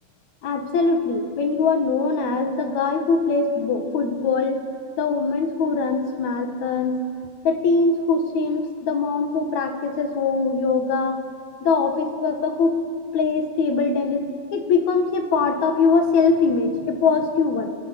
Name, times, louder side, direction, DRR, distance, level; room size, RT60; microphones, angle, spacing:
voice 1, 0.4-4.6 5.0-7.0 7.4-11.2 11.6-12.8 13.1-17.7, left 4 dB, 70° left, 5 dB, 2.8 m, -22 dB
28.0 x 16.5 x 6.0 m, 2.3 s
omnidirectional pair, 3.5 m